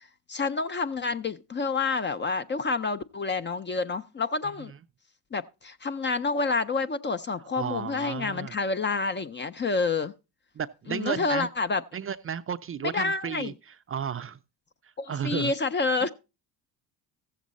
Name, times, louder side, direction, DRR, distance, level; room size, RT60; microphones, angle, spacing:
voice 1, 0.0-4.7 5.3-10.1 10.9-11.8 12.9-13.5 15.0-16.1, left 4 dB, 25° left, 0.5 m, -28 dB
voice 2, 4.4-4.8 7.6-8.6 10.6-11.5 11.9-14.4 14.8-15.5 16.0-16.1, right 8 dB, 30° right, 0.5 m, -33 dB
14.5 x 7.3 x 4.1 m
hypercardioid pair, 65°, 47 cm